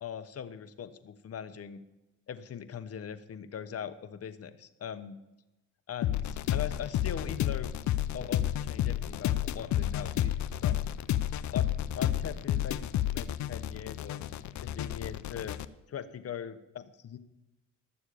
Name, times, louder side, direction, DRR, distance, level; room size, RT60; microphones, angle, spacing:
voice 1, 0.0-1.8 2.3-5.2 5.9-6.2 6.5-7.7 8.1-10.8 11.5-14.2 14.6-15.6 15.9-17.2, left 8 dB, 50° left, 11 dB, 1.1 m, -40 dB
sound 1, 6.0-15.7, left 12 dB, 70° left, 0.6 m, -31 dB
13.0 x 7.1 x 8.4 m, 0.97 s
cardioid pair, 90°, 30 cm